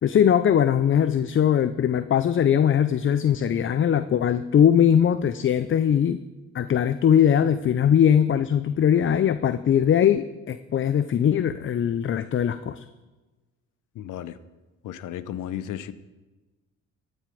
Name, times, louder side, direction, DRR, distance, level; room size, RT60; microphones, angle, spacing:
voice 1, 0.0-6.2 6.5-12.8, left 9 dB, 40° left, 12 dB, 0.5 m, -21 dB
voice 2, 13.9-14.4 14.8-15.9, left 11 dB, 75° left, 14 dB, 0.8 m, -34 dB
14.5 x 9.1 x 5.2 m, 1.2 s
cardioid pair, 80°, 32 cm